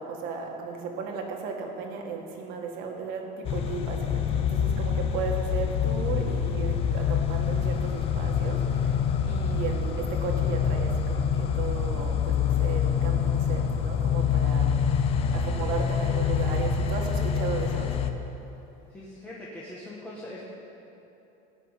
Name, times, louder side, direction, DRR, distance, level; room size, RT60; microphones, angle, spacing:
voice 1, 0.0-14.8 15.3-17.9, right 5 dB, 55° right, 2 dB, 2.0 m, -35 dB
sound 1, 3.5-18.1, left 7 dB, 30° left, 0.7 m, -26 dB
voice 2, 18.9-20.4, left 1 dB, 10° left, -7 dB, 1.5 m, -41 dB
17.5 x 6.3 x 9.0 m, 2.9 s
cardioid pair, 175°, 19 cm